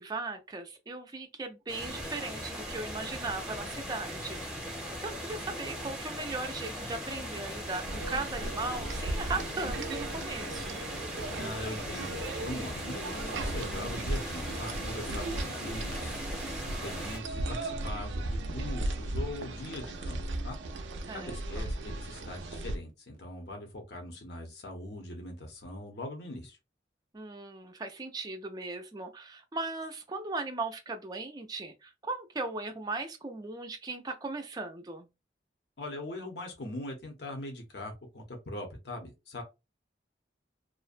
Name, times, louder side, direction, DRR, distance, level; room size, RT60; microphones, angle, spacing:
voice 1, 0.0-4.4 5.0-10.8 21.1-21.6 27.1-35.1, right 3 dB, 20° right, 0.4 m, -38 dB
sound 1, 1.7-17.2, equal, 5° right, 0.8 m, -39 dB
sound 2, 7.8-22.8, right 2 dB, 85° right, 0.4 m, -36 dB
voice 2, 11.4-20.6 21.1-26.6 35.8-39.4, left 1 dB, 65° left, 0.7 m, -41 dB
2.4 x 2.1 x 2.5 m
head